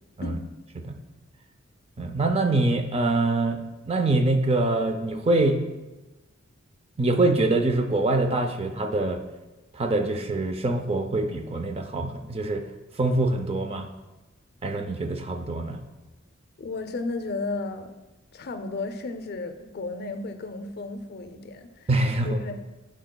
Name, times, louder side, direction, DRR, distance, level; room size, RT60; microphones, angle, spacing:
voice 1, 2.0-5.6 7.0-9.2 9.7-12.6 13.0-13.9 14.6-15.8 21.9-22.4, right 2 dB, 30° right, 6 dB, 0.5 m, -24 dB
voice 2, 16.6-17.9 18.3-21.9 22.2-22.6, left 3 dB, 50° left, 8 dB, 0.5 m, -33 dB
10.5 x 5.0 x 2.2 m, 1.1 s
head